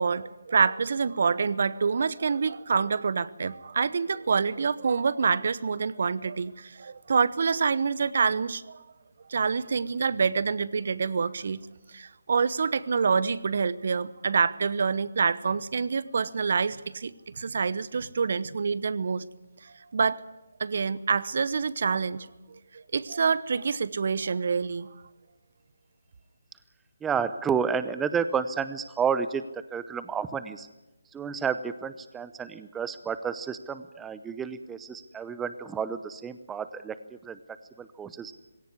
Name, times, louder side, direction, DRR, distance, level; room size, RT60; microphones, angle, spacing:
voice 1, 0.0-8.8 9.3-11.6 11.9-19.2 19.6-20.2 20.6-24.9, right 5 dB, 55° right, 18 dB, 0.9 m, -27 dB
voice 2, 27.0-30.7 31.1-37.0 37.2-37.4 37.8-38.3, right 6 dB, 10° right, 13 dB, 0.7 m, -31 dB
20.5 x 17.5 x 9.8 m, 1.0 s
figure-of-eight pair, 150°, 0 cm